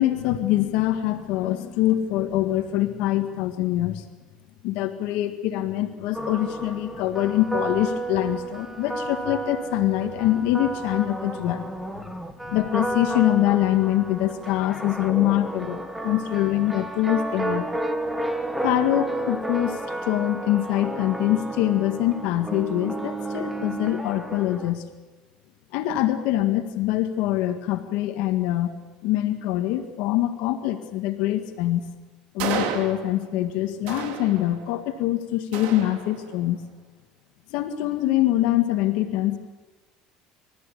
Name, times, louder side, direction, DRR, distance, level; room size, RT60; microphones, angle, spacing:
voice 1, 0.0-4.1 4.6-11.7 12.5-17.7 18.6-24.8 25.7-28.7 29.0-31.9 32.3-36.6 37.5-39.4, left 14 dB, 75° left, 7 dB, 1.8 m, -24 dB
sound 1, 6.1-24.7, right 2 dB, 5° right, 1.6 m, -32 dB
sound 2, 32.4-33.4 33.9-34.8 35.5-36.5, right 7 dB, 75° right, 2.7 m, -32 dB
27.5 x 14.0 x 8.5 m, 1.2 s
cardioid pair, 125°, 2 cm